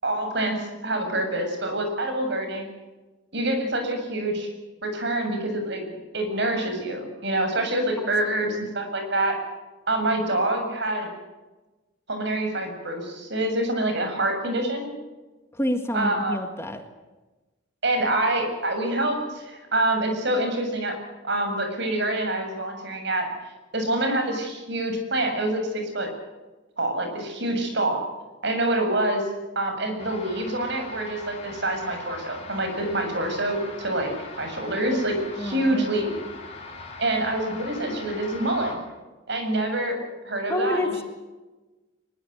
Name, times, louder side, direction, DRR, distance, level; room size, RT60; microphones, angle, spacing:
voice 1, 0.0-2.7 3.3-4.5 4.8-5.8 6.1-9.4 9.9-11.1 12.1-14.9 15.9-16.4 17.8-21.0 21.2-23.3 23.7-26.1 26.8-28.0 28.4-29.3 29.6-34.1 34.4-36.1 37.0-38.8 39.3-40.0 40.2-40.9, right 1 dB, 60° right, 5 dB, 7.4 m, -26 dB
voice 2, 15.5-16.8 35.4-35.9 40.5-41.0, left 1 dB, 15° left, 6 dB, 1.8 m, -28 dB
sound 1, 30.0-38.7, left 3 dB, 30° left, 7.3 m, -41 dB
23.0 x 22.0 x 8.1 m, 1.2 s
head